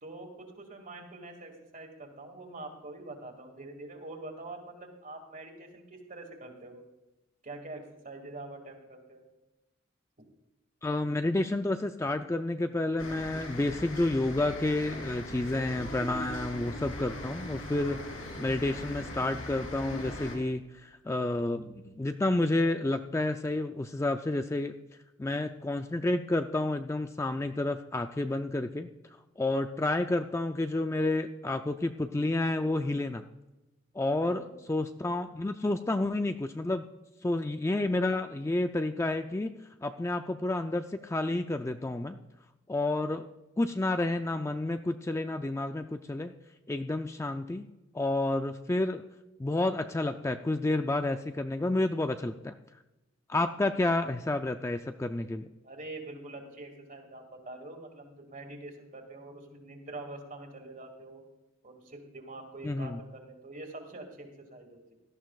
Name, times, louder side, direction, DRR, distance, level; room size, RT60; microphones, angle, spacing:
voice 1, 0.0-6.8 7.4-9.3 34.1-34.6 55.6-61.2 61.6-64.9, right 2 dB, 40° right, 4 dB, 2.1 m, -45 dB
voice 2, 10.8-18.0 18.4-24.7 25.2-28.9 29.4-33.3 33.9-36.9 37.2-39.5 39.8-42.2 42.7-43.3 43.6-46.3 46.7-47.7 47.9-49.0 49.4-52.5 53.3-55.5 62.6-63.0, left 2 dB, 15° left, 7 dB, 0.3 m, -30 dB
sound 1, 13.0-20.4, left 1 dB, 85° left, 3.3 m, -40 dB
17.5 x 12.5 x 2.4 m, 1.0 s
head